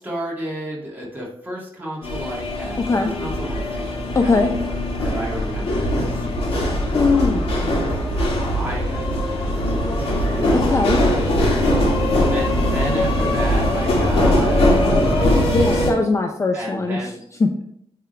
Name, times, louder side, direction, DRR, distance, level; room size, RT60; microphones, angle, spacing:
voice 1, 0.0-4.5 5.0-6.9 7.4-10.8 12.3-15.9 16.5-17.2, right 1 dB, 20° right, -5 dB, 2.5 m, -33 dB
sound 1, 2.0-15.9, left 1 dB, 70° left, 2.3 m, -20 dB
voice 2, 2.8-3.1 4.1-4.5 6.9-7.5 10.5-11.0 15.5-17.0 17.4-17.5, left 3 dB, 30° left, 4 dB, 0.5 m, -20 dB
9.1 x 3.7 x 3.3 m, 0.74 s
wide cardioid pair, 135°, 10 cm